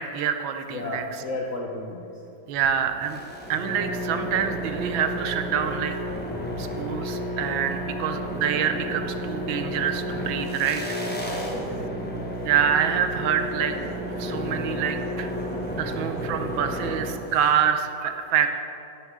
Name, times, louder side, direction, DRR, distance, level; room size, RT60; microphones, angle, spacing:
voice 1, 0.0-1.2 2.5-3.2 3.5-6.0 6.6-11.0 12.4-13.8 14.2-15.3 15.6-18.5, right 8 dB, 75° right, 7 dB, 1.4 m, -26 dB
voice 2, 0.7-2.1 11.5-12.1, left 2 dB, 65° left, -1 dB, 0.8 m, -33 dB
sound 1, 3.0-17.6, equal, 10° left, 0.6 m, -31 dB
11.0 x 10.5 x 3.6 m, 2.7 s
omnidirectional pair, 2.3 m